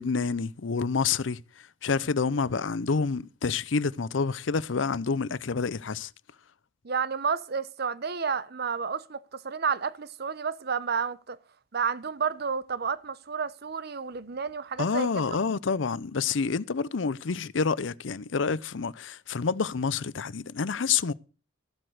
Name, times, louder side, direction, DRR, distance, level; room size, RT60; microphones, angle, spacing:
voice 1, 0.0-6.1 14.8-21.1, left 5 dB, 70° left, 0.6 m, -28 dB
voice 2, 6.8-11.4 11.7-15.4, right 6 dB, 55° right, 0.8 m, -31 dB
14.5 x 7.7 x 6.5 m
head